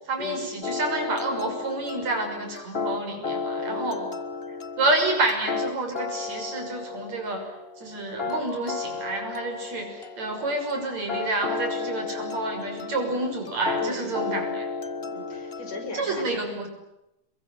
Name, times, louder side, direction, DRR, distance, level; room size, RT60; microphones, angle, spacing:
voice 1, 0.1-4.0 4.8-7.5 7.8-14.7 15.9-16.7, right 2 dB, 65° right, 4 dB, 7.4 m, -29 dB
sound 1, 0.6-15.9, left 4 dB, 30° left, 1.1 m, -33 dB
voice 2, 3.5-4.1 13.8-14.4 15.0-16.4, left 2 dB, 60° left, 3 dB, 7.2 m, -38 dB
27.5 x 22.5 x 9.3 m, 0.88 s
omnidirectional pair, 3.3 m